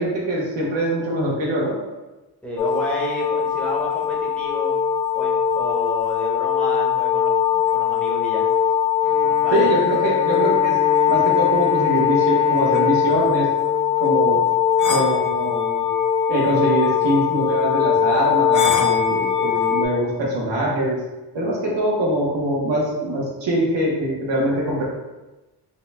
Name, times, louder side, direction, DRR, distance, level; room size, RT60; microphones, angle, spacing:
voice 1, 0.0-1.7 9.5-10.8 11.1-13.5 14.0-14.4 14.9-15.9 16.3-21.0 21.3-24.8, right 1 dB, 90° right, -4 dB, 1.0 m, -23 dB
voice 2, 2.4-4.8 5.1-8.5 9.2-9.6, equal, 5° left, -5 dB, 1.0 m, -31 dB
sound 1, 2.6-19.8, left 9 dB, 50° left, 0.5 m, -20 dB
Bowed string instrument, 9.0-14.7, left 1 dB, 20° right, 0.7 m, -35 dB
5.1 x 2.2 x 3.3 m, 1.1 s
wide cardioid pair, 130°, 42 cm